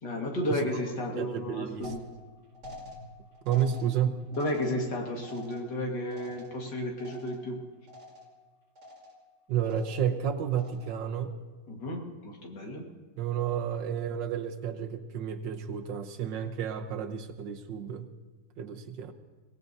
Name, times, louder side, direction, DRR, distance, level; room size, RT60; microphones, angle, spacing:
voice 1, 0.0-2.0 4.3-7.6 11.7-12.9, left 1 dB, 75° left, 0 dB, 2.4 m, -33 dB
voice 2, 1.2-1.9 3.4-4.2 9.5-11.3 13.2-18.1 18.6-19.1, right 8 dB, 90° right, 7 dB, 1.6 m, -31 dB
sound 1, 1.8-7.6 7.9-8.4 8.8-9.3 9.6-10.2 10.5-11.1, left 1 dB, 40° right, 2.6 m, -48 dB
23.5 x 18.0 x 2.7 m, 1.3 s
omnidirectional pair, 1.9 m